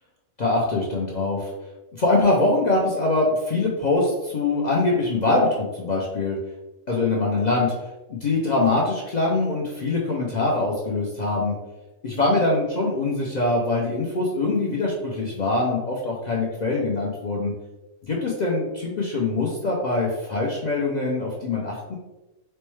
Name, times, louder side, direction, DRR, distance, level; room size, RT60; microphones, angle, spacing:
voice 1, 0.4-1.5 1.9-6.4 6.9-7.7 8.1-11.5 12.0-17.5 18.1-22.0, left 2 dB, 60° left, -3 dB, 0.4 m, -23 dB
4.3 x 2.1 x 3.1 m, 1.1 s
omnidirectional pair, 1.3 m